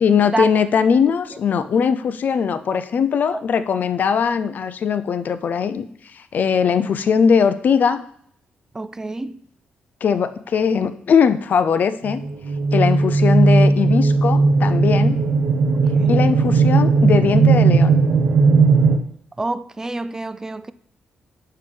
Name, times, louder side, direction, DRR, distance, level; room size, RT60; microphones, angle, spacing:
voice 1, 0.0-5.8 6.1-8.0 10.0-12.2 12.7-15.2 16.1-18.0, left 6 dB, 55° left, 0.4 m, -20 dB
voice 2, 8.7-9.4 15.7-16.2 19.4-20.7, right 2 dB, 15° right, 0.3 m, -28 dB
sound 1, 12.0-19.0, right 4 dB, 70° right, 0.7 m, -16 dB
6.9 x 5.6 x 3.3 m
cardioid pair, 95°, 3 cm